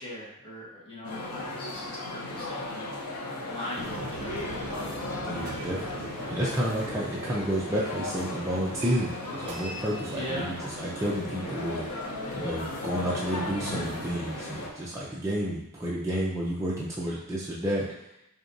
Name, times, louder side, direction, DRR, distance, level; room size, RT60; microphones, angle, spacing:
voice 1, 0.0-2.9 3.4-4.4 5.3-5.6 10.1-10.5, left 1 dB, 25° left, -6 dB, 1.1 m, -39 dB
sound 1, 1.0-14.7, left 2 dB, 85° left, 0.7 m, -36 dB
sound 2, 3.8-15.0, right 2 dB, 85° right, 0.5 m, -41 dB
voice 2, 5.2-11.9 12.3-17.9, equal, 15° right, -6 dB, 0.4 m, -31 dB
4.8 x 2.8 x 2.6 m, 0.83 s
head